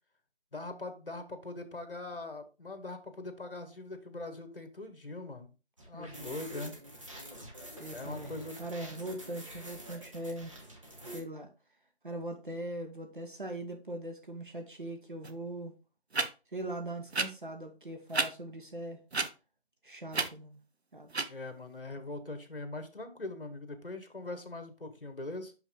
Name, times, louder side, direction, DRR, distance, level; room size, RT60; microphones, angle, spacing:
voice 1, 0.5-5.5 5.9-6.8 7.9-8.6 21.3-25.5, left 2 dB, 55° left, 1.6 m, -42 dB
sound 1, 5.8-11.2, right 1 dB, 30° right, 1.5 m, -47 dB
voice 2, 5.9-6.9 7.8-10.6 11.1-11.5 12.0-15.7 16.5-19.0 19.8-20.6 20.9-21.1, right 1 dB, 50° right, 1.2 m, -41 dB
sound 2, 15.2-15.3 16.1-16.3 17.1-17.3 18.1-18.3 19.1-19.3 20.1-20.3 21.1-21.3, right 3 dB, 80° right, 0.9 m, -30 dB
6.2 x 5.7 x 3.7 m
figure-of-eight pair, 170°, 32 cm